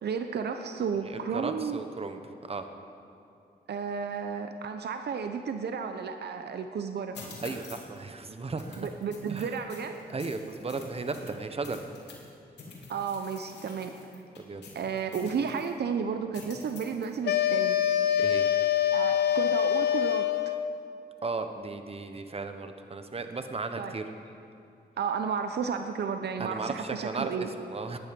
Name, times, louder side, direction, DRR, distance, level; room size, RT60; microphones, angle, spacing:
voice 1, 0.0-1.8 3.7-7.1 8.8-10.1 12.9-13.9 14.7-17.8 18.9-20.5 23.8-24.0 25.0-27.5, right 6 dB, 75° right, 7 dB, 0.8 m, -32 dB
voice 2, 1.0-2.2 2.5-2.7 7.4-8.9 9.3-9.6 10.1-11.8 14.4-14.6 18.2-18.5 21.2-24.0 26.4-28.0, right 3 dB, 35° right, 7 dB, 1.1 m, -35 dB
sound 1, 7.1-8.0 8.6-12.3 12.6-15.7 16.3-17.2, left 3 dB, 90° left, 2.6 m, -47 dB
sound 2, 17.3-20.8, left 11 dB, 70° left, 0.6 m, -25 dB
18.5 x 10.5 x 5.3 m, 2.6 s
cardioid pair, 85°, 17 cm